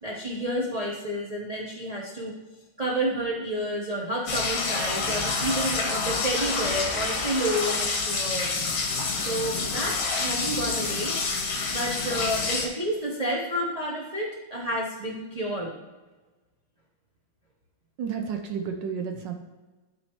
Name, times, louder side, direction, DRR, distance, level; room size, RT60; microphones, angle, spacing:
voice 1, 0.0-2.3 2.8-8.5 9.1-11.2 11.7-15.7, equal, 50° right, -3 dB, 0.4 m, -30 dB
sound 1, 4.3-12.7, left 4 dB, 55° left, 1.4 m, -28 dB
voice 2, 18.0-19.3, right 6 dB, 70° right, 5 dB, 1.2 m, -31 dB
11.5 x 4.1 x 3.0 m, 1.2 s
omnidirectional pair, 2.2 m